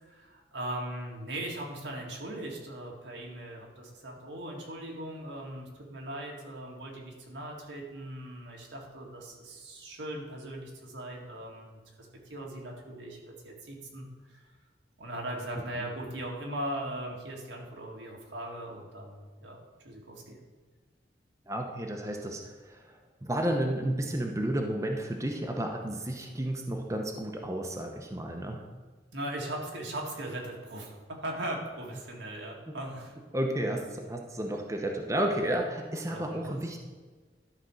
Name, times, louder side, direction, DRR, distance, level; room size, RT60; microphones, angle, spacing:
voice 1, 0.1-11.8 12.3-14.4 15.0-19.6 19.8-20.4 29.1-33.2 36.1-36.6, right 1 dB, 85° right, -1 dB, 2.0 m, -39 dB
voice 2, 21.5-28.6 32.7-32.8 33.3-36.8, right 1 dB, 15° right, 2 dB, 0.7 m, -32 dB
11.5 x 4.3 x 6.3 m, 1.4 s
head